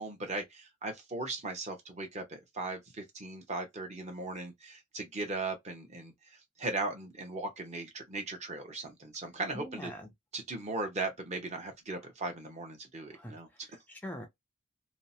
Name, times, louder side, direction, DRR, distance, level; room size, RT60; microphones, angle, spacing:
voice 1, 0.0-9.9 10.3-13.5, right 2 dB, 35° right, 0.7 m, -38 dB
voice 2, 9.5-10.1 12.0-12.1 13.1-14.3, left 1 dB, 10° left, 0.4 m, -44 dB
2.7 x 2.0 x 2.6 m
head